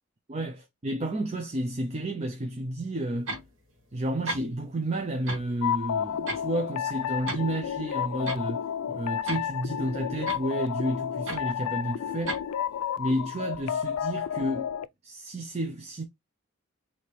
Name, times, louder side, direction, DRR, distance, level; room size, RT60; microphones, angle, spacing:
voice 1, 0.3-3.3 3.9-12.4 13.0-14.7 15.0-16.0, right 1 dB, 30° right, 0.5 m, -31 dB
sound 1, 3.3-3.5 4.0-4.1 4.3-4.4 5.3-5.5 5.8-6.5 6.9-7.4 7.8-7.9 8.3-8.4 9.3-9.5 10.3-10.5 11.3-11.4 12.3-12.4, right 2 dB, 65° right, 1.3 m, -34 dB
sound 2, 5.6-14.9, left 9 dB, 90° left, 0.3 m, -31 dB
4.5 x 2.8 x 3.1 m
head